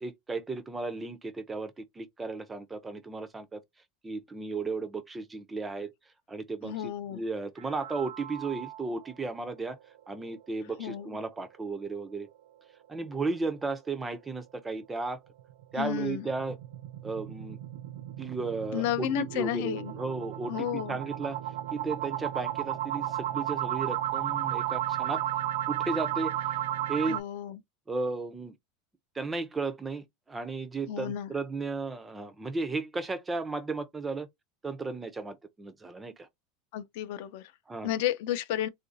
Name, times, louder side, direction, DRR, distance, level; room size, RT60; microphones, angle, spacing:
voice 1, 0.0-3.6 4.0-5.9 6.3-9.8 10.1-12.3 12.9-15.2 15.7-16.6 17.0-17.6 18.2-21.4 21.7-25.3 25.7-26.4 26.9-27.2 27.9-28.5 29.1-34.3 34.6-36.3 37.7-37.9, right 3 dB, 10° right, 0.4 m, -34 dB
voice 2, 6.6-7.2 10.8-11.2 15.7-16.3 18.7-19.9 20.5-21.0 27.1-27.6 30.9-31.3 36.7-37.5 37.8-38.7, left 11 dB, 60° left, 0.5 m, -32 dB
sound 1, 7.6-9.1 9.5-9.6 9.9-10.0 10.5-10.6 15.4-27.2, right 12 dB, 80° right, 0.4 m, -34 dB
3.8 x 2.5 x 2.6 m
supercardioid pair, 170°, 0 cm